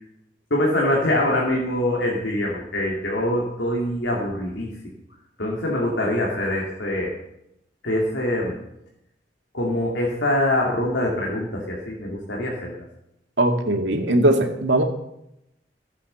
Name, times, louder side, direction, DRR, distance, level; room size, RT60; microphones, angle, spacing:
voice 1, 0.5-4.7 5.4-7.1 7.8-8.5 9.5-12.8, left 1 dB, 80° left, -3 dB, 2.7 m, -24 dB
voice 2, 13.4-14.8, right 1 dB, 85° right, 3 dB, 2.0 m, -19 dB
16.0 x 8.4 x 6.8 m, 0.83 s
head